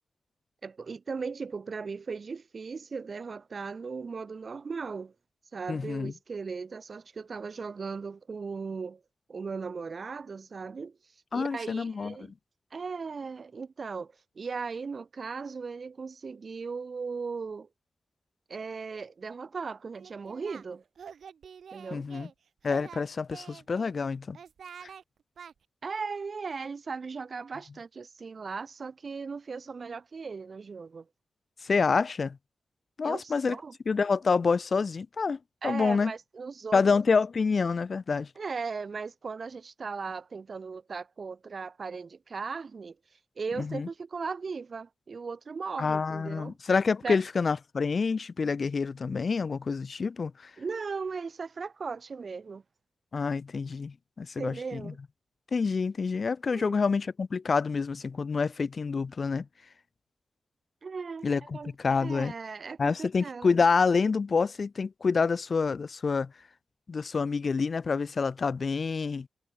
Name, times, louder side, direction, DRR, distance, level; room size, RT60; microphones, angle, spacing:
voice 1, 0.6-5.1 5.5-9.0 9.3-11.0 11.3-12.3 12.7-17.7 18.5-20.8 21.7-22.1 25.8-31.0 33.0-33.7 35.6-36.8 38.4-43.0 43.4-46.5 47.0-47.2 50.6-52.6 54.4-55.0 56.5-56.8 60.8-61.7 62.0-63.6, right 5 dB, 60° right, 1.5 m, -37 dB
voice 2, 5.7-6.1 11.3-12.2 21.9-22.3 22.6-24.4 31.6-32.4 33.0-33.6 33.9-36.1 36.7-38.3 43.5-43.9 45.8-50.5 53.1-54.9 55.5-59.5 61.2-62.3 62.8-66.3 66.9-69.3, left 5 dB, 60° left, 0.4 m, -27 dB
Singing, 19.9-20.7 21.0-22.3 22.6-23.9 24.3-25.0 25.4-25.5, right 7 dB, 80° right, 1.0 m, -46 dB
cardioid pair, 40°, 0 cm